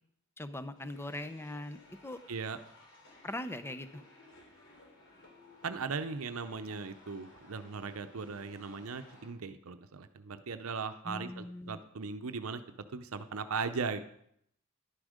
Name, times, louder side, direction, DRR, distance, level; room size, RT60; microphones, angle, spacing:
voice 1, 0.4-2.2 3.2-4.0 11.0-11.8, left 1 dB, 10° left, 11 dB, 0.6 m, -41 dB
sound 1, 0.7-9.3, left 2 dB, 55° left, 3.6 m, -58 dB
voice 2, 2.3-2.6 5.6-12.6 12.9-14.0, right 5 dB, 75° right, 9 dB, 0.7 m, -38 dB
11.0 x 10.0 x 5.0 m, 0.70 s
head